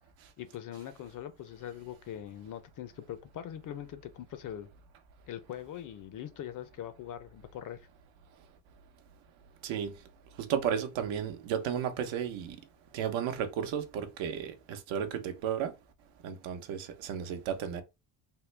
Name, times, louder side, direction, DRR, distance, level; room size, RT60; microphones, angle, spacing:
voice 1, 0.4-4.7 5.3-7.8, left 10 dB, 45° left, 0.5 m, -42 dB
voice 2, 9.6-9.9 10.4-12.6 12.9-15.7 16.2-17.8, right 8 dB, 75° right, 0.8 m, -33 dB
3.6 x 2.1 x 3.2 m
cardioid pair, 125°, 47 cm